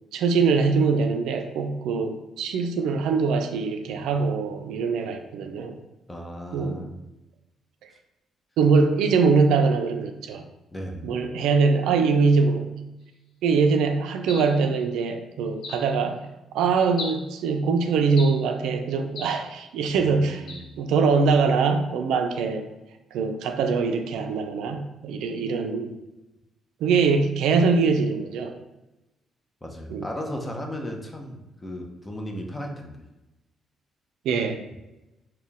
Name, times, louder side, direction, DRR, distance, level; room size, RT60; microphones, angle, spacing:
voice 1, 0.1-5.8 6.5-6.8 8.6-10.4 11.0-12.7 13.4-16.2 16.5-20.5 20.8-22.6 23.1-25.9 26.8-28.5 29.9-30.1 34.2-34.6, right 4 dB, 85° right, 6 dB, 0.3 m, -23 dB
voice 2, 6.1-7.0 10.7-11.1 20.0-20.7 29.6-33.0, equal, 15° left, 2 dB, 0.6 m, -35 dB
sound 1, 14.3-14.6 15.6-15.9 17.0-17.3 18.2-18.5 19.2-19.4 20.5-20.7, left 2 dB, 75° left, 0.7 m, -37 dB
4.2 x 2.1 x 3.4 m, 1.0 s
cardioid pair, 90°, 0 cm